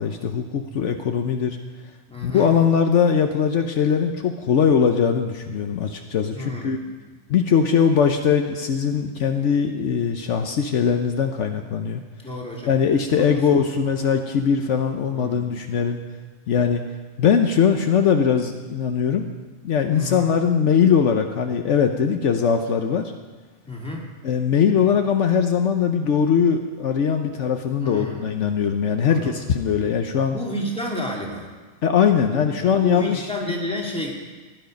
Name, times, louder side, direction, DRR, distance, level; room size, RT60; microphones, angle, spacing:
voice 1, 0.0-1.6 2.2-6.8 7.3-12.0 12.7-16.0 16.5-16.8 17.2-19.3 19.6-23.0 24.2-30.4 31.8-33.3, left 7 dB, 70° left, 5 dB, 1.1 m, -21 dB
voice 2, 2.1-2.5 6.3-6.8 12.2-12.7 13.2-13.6 15.0-15.5 19.9-20.2 23.6-24.0 27.8-28.3 29.1-29.4 30.3-31.5 32.3-34.1, left 1 dB, 5° left, -3 dB, 2.6 m, -31 dB
16.5 x 11.0 x 5.2 m, 1.3 s
omnidirectional pair, 1.3 m